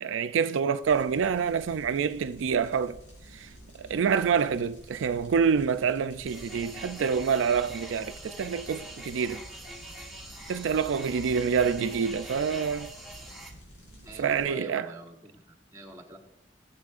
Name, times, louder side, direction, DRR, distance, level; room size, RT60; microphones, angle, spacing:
voice 1, 0.0-3.0 3.3-3.5 3.8-9.4 10.5-12.9 14.2-14.9, right 6 dB, 85° right, 0.4 m, -27 dB
sound 1, 0.8-14.5, equal, 75° left, 4.4 m, -51 dB
sound 2, 6.2-13.5, right 1 dB, ahead, 1.3 m, -43 dB
voice 2, 14.0-16.2, right 1 dB, 15° right, 1.4 m, -46 dB
17.0 x 7.6 x 2.5 m
head